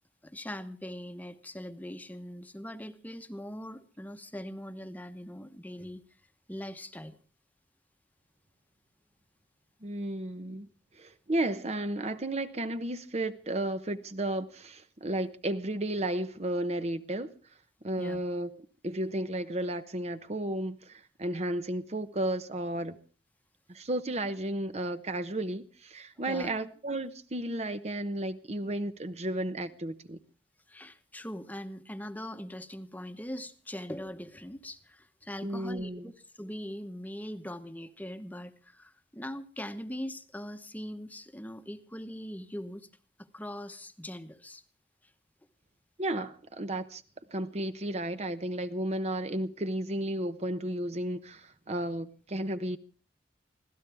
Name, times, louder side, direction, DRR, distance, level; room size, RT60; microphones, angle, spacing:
voice 1, 0.2-6.0 6.5-7.2 18.0-18.2 26.3-26.5 30.7-42.9 43.2-44.6, equal, 10° left, 1.0 m, -41 dB
voice 2, 9.8-10.7 11.0-17.3 17.8-18.5 18.8-23.0 23.7-30.2 35.4-36.1 46.0-47.0 47.3-52.8, right 1 dB, 40° right, 0.9 m, -33 dB
25.0 x 16.5 x 3.4 m
head